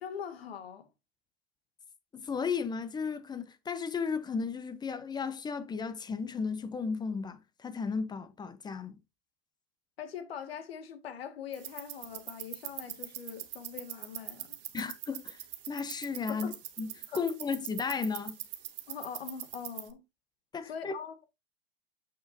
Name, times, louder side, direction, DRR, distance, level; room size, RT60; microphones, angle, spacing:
voice 1, 0.0-0.9 10.0-14.6 16.3-16.6 17.1-17.2 18.9-20.0 20.6-21.3, left 7 dB, 75° left, 2.0 m, -42 dB
voice 2, 2.1-9.0 14.7-16.5 16.8-18.4 20.5-20.9, left 5 dB, 15° left, 0.7 m, -34 dB
sound 1, 11.5-19.9, right 13 dB, 65° right, 1.5 m, -43 dB
7.6 x 7.1 x 2.7 m
hypercardioid pair, 120°, 30 cm